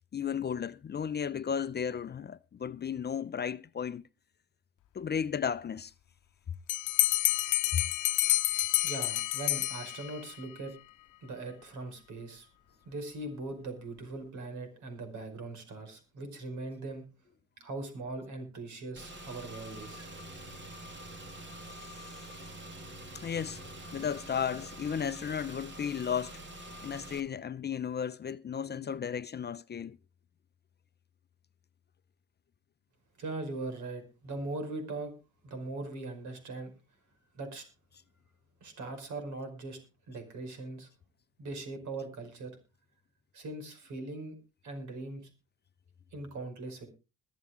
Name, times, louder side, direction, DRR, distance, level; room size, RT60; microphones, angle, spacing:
voice 1, 0.1-4.0 4.9-5.9 7.7-7.8 21.9-22.2 23.1-23.6 23.9-26.4 26.8-30.0, left 7 dB, 35° left, 0.5 m, -34 dB
Bell, 6.7-10.3, left 17 dB, 80° left, 0.8 m, -29 dB
voice 2, 8.8-10.7 11.2-12.5 12.8-17.1 17.6-20.1 33.2-35.1 35.4-36.7 37.3-37.6 38.6-39.8 40.1-40.9 41.4-42.6 43.3-44.4 44.6-45.3 46.1-46.9, right 2 dB, 75° right, 5.2 m, -40 dB
Car / Engine, 19.0-27.2, right 1 dB, 40° right, 2.5 m, -46 dB
22.5 x 7.4 x 3.7 m
cardioid pair, 90°, 30 cm